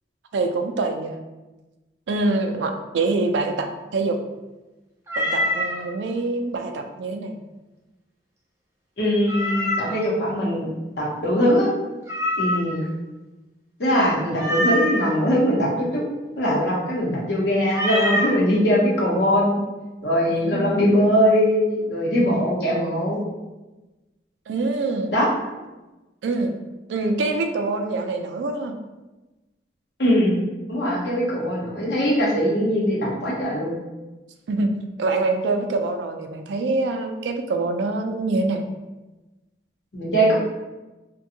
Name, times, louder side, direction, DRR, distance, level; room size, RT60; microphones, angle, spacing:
voice 1, 0.3-1.2 2.1-4.2 5.2-7.4 20.3-20.8 24.5-25.2 26.2-26.6 26.9-28.8 34.5-34.7 35.0-38.6, right 3 dB, 85° right, 5 dB, 0.3 m, -25 dB
Meow, 5.1-5.8 9.3-10.1 12.1-12.9 14.4-15.1 17.7-18.4, left 1 dB, 15° right, 0.4 m, -24 dB
voice 2, 9.0-10.7 11.0-11.7 12.4-12.8 13.8-16.0 16.4-19.6 20.0-23.2 25.1-25.3 30.0-30.4 30.7-33.8 39.9-40.3, equal, 70° left, -4 dB, 0.8 m, -21 dB
2.5 x 2.2 x 2.7 m, 1.1 s
head